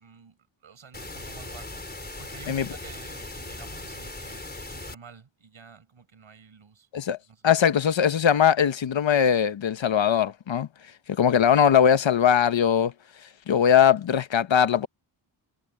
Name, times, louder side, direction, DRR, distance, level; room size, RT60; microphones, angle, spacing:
voice 1, 0.0-1.8 2.2-6.9 7.2-7.5, right 6 dB, 70° right, 6.0 m, -49 dB
sound 1, 0.9-4.9, left 2 dB, 20° left, 3.9 m, -39 dB
voice 2, 7.4-10.7 11.2-12.9 13.5-14.9, left 8 dB, 65° left, 0.9 m, -20 dB
wide cardioid pair, 155°, 50 cm